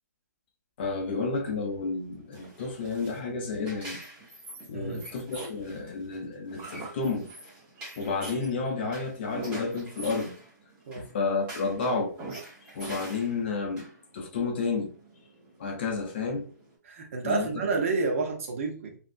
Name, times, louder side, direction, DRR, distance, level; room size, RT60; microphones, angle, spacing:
voice 1, 0.8-4.0 4.7-7.3 8.0-10.3 11.0-12.1 12.7-14.9 15.6-16.5 17.2-17.5, left 4 dB, 35° left, 0.6 m, -31 dB
sound 1, 1.6-16.7, right 2 dB, 15° right, 1.0 m, -45 dB
voice 2, 16.9-19.0, right 4 dB, 45° right, 0.8 m, -29 dB
3.2 x 2.6 x 2.5 m
hypercardioid pair, 165°, 9 cm